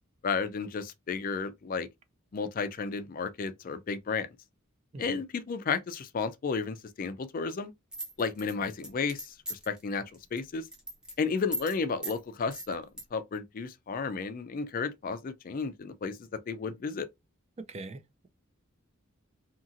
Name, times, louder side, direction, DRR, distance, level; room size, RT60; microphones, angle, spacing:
voice 1, 0.2-1.9 2.3-4.3 5.0-7.7 8.2-10.0 10.3-10.7 11.2-12.9 13.1-17.1, left 5 dB, 40° left, 0.3 m, -33 dB
sound 1, 7.9-9.8 10.1-10.4 10.7-11.1 11.5-11.8 12.0-12.2 12.5-13.0, equal, 5° right, 0.7 m, -37 dB
voice 2, 17.6-18.3, right 2 dB, 30° right, 0.4 m, -43 dB
2.8 x 2.7 x 2.5 m
head